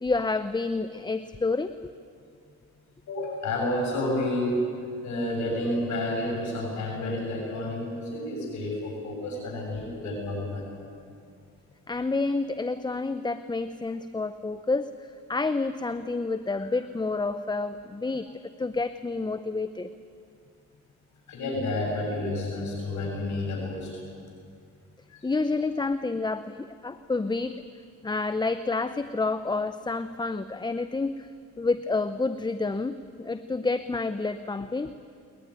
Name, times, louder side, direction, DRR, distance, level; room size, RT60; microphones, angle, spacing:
voice 1, 0.0-1.7 11.9-19.9 25.2-27.6 28.0-31.3 31.6-34.9, left 3 dB, 15° left, 11 dB, 0.7 m, -29 dB
voice 2, 3.1-4.6 5.0-10.7 16.6-16.7 18.0-18.1 21.3-23.9 25.1-25.3, left 1 dB, 70° left, -1 dB, 6.8 m, -30 dB
21.5 x 20.5 x 9.6 m, 2.4 s
cardioid pair, 90°, 30 cm